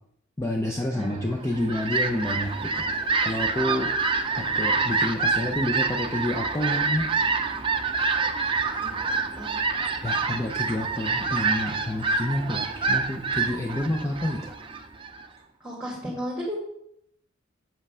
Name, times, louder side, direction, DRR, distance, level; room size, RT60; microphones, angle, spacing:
voice 1, 0.4-2.9 3.2-3.9 4.3-7.1 10.0-14.5, left 1 dB, 15° left, 0 dB, 0.6 m, -29 dB
Fowl, 1.3-15.2, right 4 dB, 25° right, 0.6 m, -27 dB
voice 2, 8.8-9.6 15.6-16.6, equal, 5° right, -5 dB, 1.8 m, -34 dB
7.5 x 5.7 x 5.5 m, 0.75 s
head